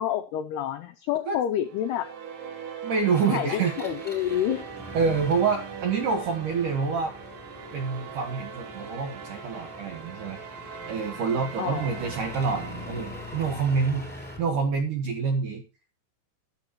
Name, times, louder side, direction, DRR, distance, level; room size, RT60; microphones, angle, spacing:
voice 1, 0.0-2.1 3.3-4.6 11.6-11.9, left 11 dB, 85° left, 9 dB, 2.3 m, -28 dB
sound 1, 1.6-14.0, right 6 dB, 90° right, 5.1 m, -41 dB
voice 2, 2.8-3.7 4.9-7.1 7.7-10.4 10.9-14.1 14.4-15.6, right 5 dB, 65° right, 4 dB, 2.1 m, -27 dB
Engine, 3.0-14.5, left 2 dB, ahead, 2.9 m, -43 dB
14.5 x 10.5 x 3.0 m, 0.32 s
omnidirectional pair, 5.7 m